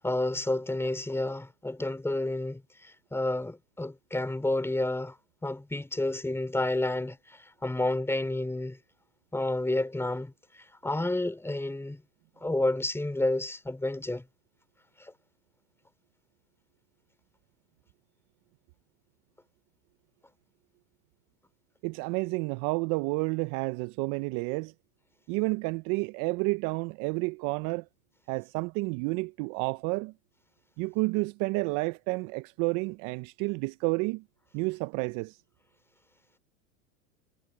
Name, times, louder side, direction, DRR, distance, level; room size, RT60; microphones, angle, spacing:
voice 1, 0.0-5.1 5.4-7.2 7.6-8.8 9.3-10.3 10.8-12.0 12.4-14.2, left 2 dB, 5° left, 4.2 m, -30 dB
voice 2, 21.8-24.7 25.3-27.9 28.3-30.1 30.8-34.2 34.5-35.4, right 27 dB, 45° right, 0.7 m, -30 dB
hypercardioid pair, 110°, 44 cm